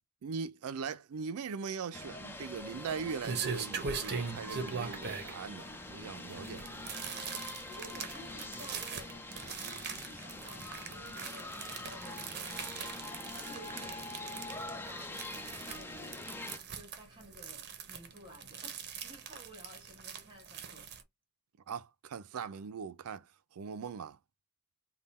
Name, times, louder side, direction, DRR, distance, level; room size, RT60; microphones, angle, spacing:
voice 1, 0.2-6.9 21.7-23.2 23.5-24.2, right 6 dB, 70° right, 0.4 m, -40 dB
sound 1, 1.9-16.6, left 2 dB, 10° left, 0.5 m, -44 dB
sound 2, 2.5-21.0, right 6 dB, 50° right, 0.7 m, -41 dB
voice 2, 7.7-9.3 10.0-16.1 16.4-20.9, equal, 25° right, 1.1 m, -54 dB
3.5 x 2.2 x 4.0 m
head